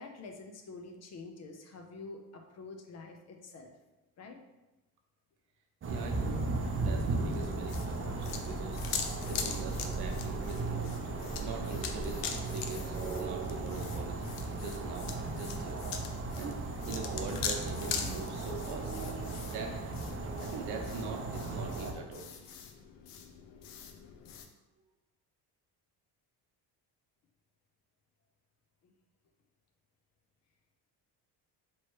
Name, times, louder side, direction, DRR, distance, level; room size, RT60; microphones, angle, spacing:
voice 1, 0.0-3.7 4.2-4.4 28.8-28.9, left 3 dB, 40° left, 5 dB, 0.5 m, -47 dB
sound 1, 5.8-21.9, right 3 dB, 30° right, 0.6 m, -36 dB
voice 2, 5.8-6.4 6.7-8.8 9.3-11.0 11.4-12.2 12.5-14.2 14.5-15.8 16.4-16.6 16.9-18.9 19.4-19.7 20.4-22.3, right 4 dB, 70° right, 2 dB, 0.8 m, -42 dB
sound 2, 7.3-24.5, left 7 dB, 85° left, 0.6 m, -42 dB
3.1 x 3.0 x 4.4 m, 1.0 s
cardioid pair, 130°, 41 cm